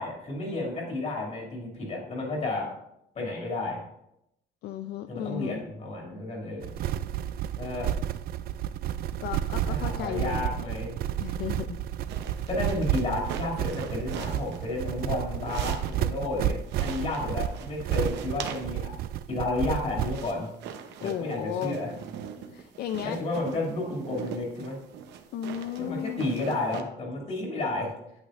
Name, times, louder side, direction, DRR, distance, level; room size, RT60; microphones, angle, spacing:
voice 1, 0.0-2.7 3.1-3.8 5.1-6.8 7.6-7.9 9.7-11.0 12.5-18.9 19.3-20.5 21.0-21.9 23.0-24.8 25.8-27.9, left 2 dB, 40° left, -2 dB, 2.7 m, -32 dB
voice 2, 4.6-5.6 9.2-10.6 11.2-11.8 12.4-12.5 21.0-21.8 22.5-23.2 25.3-26.3, left 10 dB, 65° left, 9 dB, 0.4 m, -34 dB
sound 1, 6.6-20.3, right 11 dB, 60° right, 0.4 m, -31 dB
sound 2, 12.1-16.3 16.6-19.0 19.7-26.8, right 8 dB, 85° right, 0.8 m, -42 dB
9.1 x 8.7 x 2.6 m, 0.80 s
cardioid pair, 140°, 17 cm